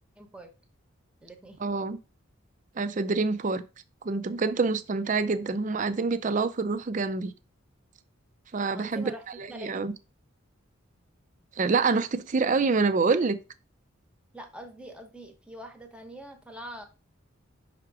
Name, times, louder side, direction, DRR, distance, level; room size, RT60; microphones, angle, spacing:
voice 1, 0.2-0.5 1.2-1.6 8.7-9.2 9.5-9.8 14.3-16.8, right 1 dB, 5° right, 0.8 m, -44 dB
voice 2, 1.6-2.0 2.8-3.6 4.0-7.3 8.5-9.1 9.4-9.9 11.6-13.4, right 4 dB, 35° right, 0.4 m, -26 dB
5.8 x 3.6 x 4.6 m
head